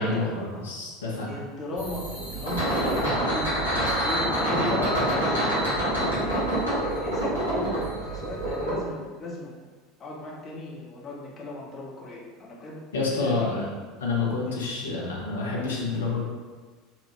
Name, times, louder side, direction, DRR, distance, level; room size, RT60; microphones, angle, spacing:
voice 1, 0.0-1.3 12.9-13.7 14.0-16.3, left 3 dB, 70° left, -3 dB, 0.7 m, -28 dB
voice 2, 1.3-3.6 3.9-6.4 6.8-9.5 10.0-12.8 13.0-13.7 14.5-14.6, left 1 dB, 30° left, -4 dB, 0.8 m, -36 dB
sound 1, 1.8-8.7, right 1 dB, 75° right, 1.3 m, -26 dB
3.2 x 2.1 x 3.0 m, 1.4 s
figure-of-eight pair, 75°, 0 cm